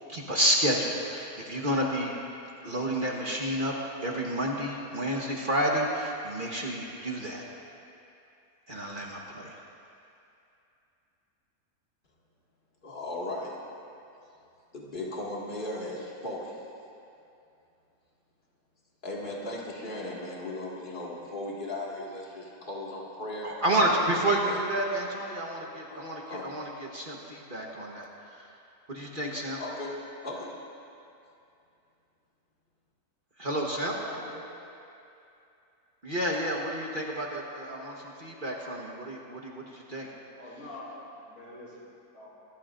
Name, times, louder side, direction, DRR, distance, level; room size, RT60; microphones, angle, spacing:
voice 1, 0.1-2.1 2.6-3.7 4.0-7.4 8.7-9.5 23.4-28.5 28.9-29.6 33.4-33.9 36.0-40.1, right 1 dB, 35° right, -2 dB, 1.4 m, -30 dB
voice 2, 12.8-13.5 14.7-16.6 19.0-23.5 24.3-24.5 25.9-26.0 26.3-26.5 29.6-29.9 30.2-30.5, left 1 dB, 35° left, -4 dB, 2.3 m, -37 dB
voice 3, 33.9-34.5 40.3-42.3, left 1 dB, 75° left, -7 dB, 4.5 m, -45 dB
26.0 x 15.0 x 2.6 m, 2.6 s
omnidirectional pair, 1.5 m